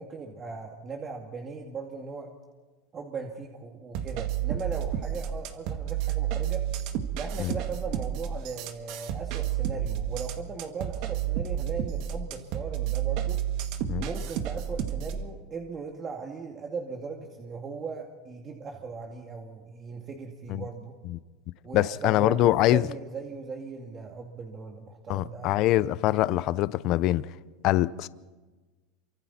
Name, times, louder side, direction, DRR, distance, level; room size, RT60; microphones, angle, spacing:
voice 1, 0.0-2.3 2.9-6.6 7.2-13.4 14.0-21.0 21.6-25.5, right 5 dB, 30° right, 2.2 m, -38 dB
sound 1, 3.9-15.2, right 10 dB, 60° right, 1.8 m, -31 dB
voice 2, 21.7-22.9 25.1-27.3 27.6-28.1, left 15 dB, 55° left, 0.6 m, -24 dB
28.5 x 24.5 x 4.3 m
supercardioid pair, 120°, 0 cm